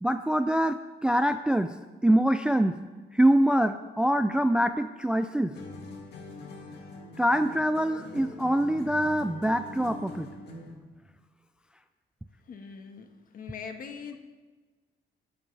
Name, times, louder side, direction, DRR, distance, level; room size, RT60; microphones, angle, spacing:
voice 1, 0.0-2.8 3.1-5.5 7.2-10.3, right 1 dB, 5° right, 9 dB, 0.3 m, -24 dB
sound 1, 5.5-10.9, left 2 dB, 65° left, 2.1 m, -43 dB
voice 2, 12.5-13.1 13.3-14.2, left 6 dB, 50° left, 5 dB, 1.4 m, -41 dB
19.5 x 8.9 x 3.3 m, 1.3 s
cardioid pair, 145°, 18 cm